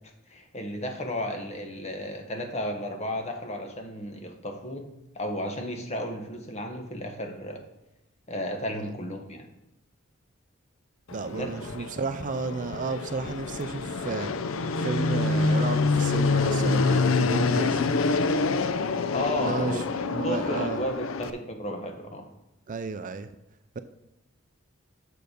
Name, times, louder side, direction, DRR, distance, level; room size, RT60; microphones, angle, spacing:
voice 1, 0.3-4.9 5.1-7.6 8.3-9.4 11.3-11.5 19.1-19.8 20.2-22.3, left 1 dB, 35° left, 4 dB, 1.2 m, -33 dB
Fixed-wing aircraft airplane, 11.1-21.3, left 3 dB, 70° left, 0.5 m, -26 dB
voice 2, 11.1-14.3 14.8-17.8 19.4-19.8 20.1-20.8 22.7-23.3, right 4 dB, 40° right, 10 dB, 0.4 m, -32 dB
6.8 x 6.6 x 5.1 m, 0.88 s
head